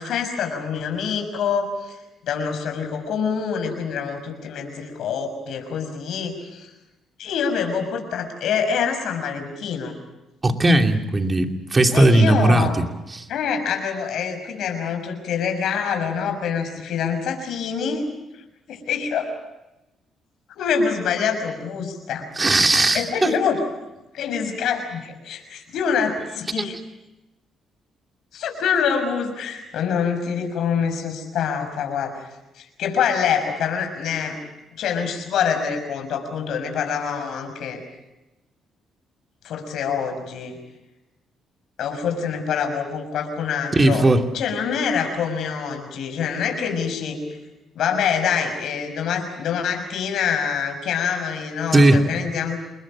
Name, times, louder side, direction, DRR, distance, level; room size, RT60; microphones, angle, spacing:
voice 1, 0.0-2.0 2.3-6.7 7.2-9.9 11.9-12.7 13.3-18.0 18.7-19.3 20.6-22.3 22.9-23.6 24.1-26.8 28.3-32.3 32.8-34.4 34.8-37.8 39.4-40.6 41.8-44.1 44.3-47.2 47.7-52.6, left 6 dB, 75° left, 6 dB, 6.1 m, -25 dB
voice 2, 10.4-13.2 22.4-23.3 26.6-26.7 43.7-44.2 51.7-52.0, right 2 dB, 25° right, 5 dB, 2.7 m, -17 dB
28.5 x 21.5 x 7.5 m, 0.99 s
cardioid pair, 90°, 0 cm